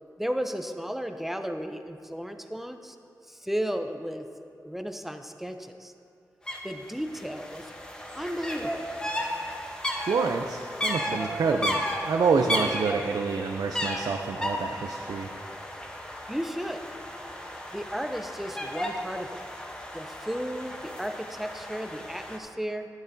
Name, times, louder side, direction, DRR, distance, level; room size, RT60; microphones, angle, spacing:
voice 1, 0.2-3.0 3.2-4.3 4.6-5.9 6.6-7.7 8.1-8.9 16.3-16.8 17.7-19.4 19.9-22.9, equal, 5° right, 7 dB, 0.5 m, -34 dB
sound 1, 6.5-6.6 6.8-22.4, equal, 15° left, 0.9 m, -34 dB
voice 2, 10.1-11.8 12.0-15.3, right 4 dB, 85° right, 3 dB, 0.5 m, -27 dB
12.0 x 10.5 x 2.7 m, 2.5 s
wide cardioid pair, 150°, 6 cm